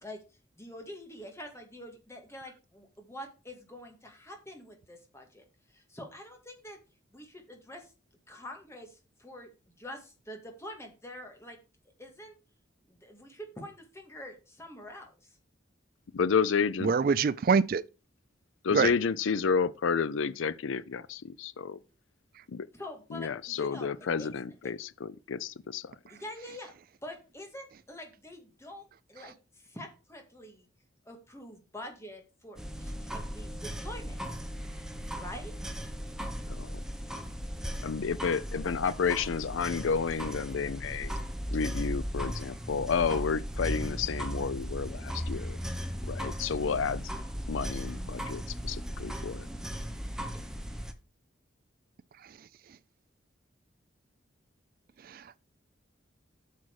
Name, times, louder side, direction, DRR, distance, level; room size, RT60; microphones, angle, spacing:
voice 1, 0.6-6.8 7.1-7.9 8.3-9.5 9.8-11.6 12.0-12.3 12.9-15.4 22.7-23.9 24.2-24.3 24.6-24.7 26.1-26.7 27.0-30.7 31.1-34.2 35.2-35.5, left 1 dB, 15° left, 2.1 m, -46 dB
voice 2, 16.1-16.9 18.6-21.8 22.5-22.7 23.1-25.8 36.6-36.7 37.8-41.1 41.5-45.6 46.0-47.0 47.5-48.4 48.7-49.5, left 5 dB, 85° left, 0.5 m, -30 dB
voice 3, 16.8-17.8 18.7-18.9, right 5 dB, 45° right, 0.3 m, -24 dB
sound 1, 32.6-50.9, equal, 5° right, 0.9 m, -37 dB
8.3 x 6.2 x 4.8 m
head